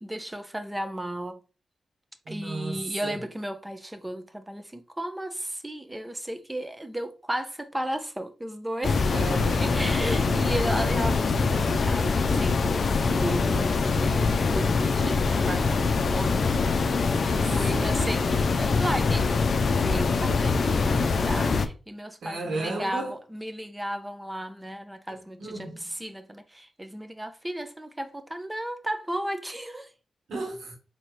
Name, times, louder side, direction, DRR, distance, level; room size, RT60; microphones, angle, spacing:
voice 1, 0.0-1.4 2.3-9.1 9.6-19.4 19.8-29.9, right 1 dB, 15° right, 0.7 m, -34 dB
voice 2, 2.2-3.2 9.1-10.2 17.1-17.9 22.2-23.1 25.4-25.9 30.3-30.8, right 2 dB, 80° right, 1.5 m, -35 dB
sound 1, 8.8-21.7, left 4 dB, 60° left, 0.5 m, -24 dB
4.1 x 2.9 x 3.1 m
cardioid pair, 50°, 0 cm